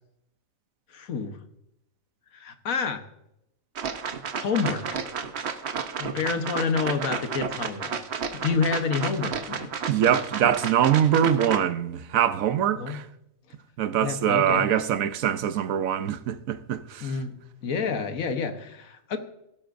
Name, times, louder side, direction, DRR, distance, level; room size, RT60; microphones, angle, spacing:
voice 1, 0.9-1.4 2.3-3.0 4.3-5.0 6.0-7.9 8.3-9.7 12.7-13.0 14.0-14.7 17.0-19.2, left 5 dB, 85° left, 1.5 m, -28 dB
sound 1, 3.8-11.6, right 6 dB, 55° right, 1.0 m, -32 dB
voice 2, 9.9-13.1 13.8-17.1, right 9 dB, 80° right, 1.1 m, -23 dB
15.5 x 13.0 x 2.6 m
omnidirectional pair, 1.4 m